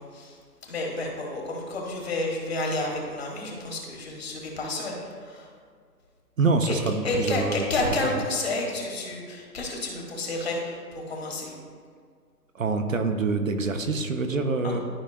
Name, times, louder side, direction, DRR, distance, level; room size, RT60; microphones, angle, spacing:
voice 1, 0.0-5.5 6.7-6.8 7.0-11.5 14.6-14.8, left 2 dB, 40° left, 0 dB, 1.5 m, -30 dB
voice 2, 6.4-8.2 12.5-14.8, right 3 dB, 55° right, 5 dB, 0.7 m, -26 dB
12.5 x 5.3 x 2.3 m, 2.1 s
hypercardioid pair, 170°, 48 cm